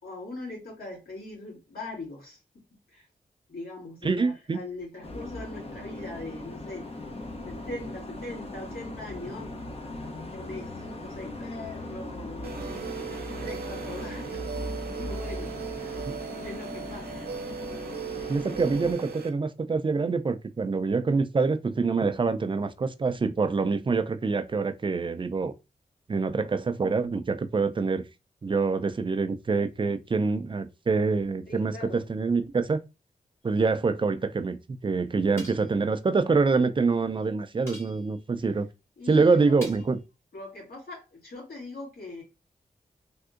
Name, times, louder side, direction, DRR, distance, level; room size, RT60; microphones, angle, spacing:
voice 1, 0.0-2.6 2.9-3.1 3.5-6.9 7.4-9.7 10.3-12.5 13.4-14.4 15.0-16.1 16.3-17.3 31.5-32.1 39.0-39.6 40.3-42.2, left 2 dB, 75° left, 2.0 m, -41 dB
voice 2, 4.0-4.6 18.3-25.5 26.1-28.0 28.4-32.8 33.4-38.7 39.1-40.0, right 4 dB, 35° right, 0.4 m, -25 dB
sound 1, 5.0-18.9, left 2 dB, 40° left, 0.7 m, -39 dB
sound 2, 12.4-19.3, right 7 dB, 85° right, 0.6 m, -37 dB
sound 3, 35.4-35.8 37.7-38.3 39.6-40.0, equal, 15° left, 1.1 m, -45 dB
3.5 x 2.7 x 2.4 m
cardioid pair, 65°, 16 cm